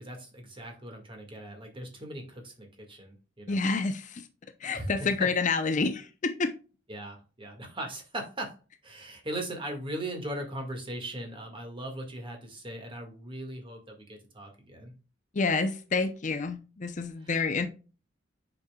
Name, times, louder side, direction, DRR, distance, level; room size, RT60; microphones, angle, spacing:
voice 1, 0.0-3.6 4.7-4.9 6.9-8.5 8.8-14.9, right 1 dB, 25° right, 1.8 m, -39 dB
voice 2, 3.5-4.3 4.6-6.6 15.3-17.7, left 4 dB, 40° left, 0.6 m, -28 dB
8.3 x 5.4 x 2.3 m
head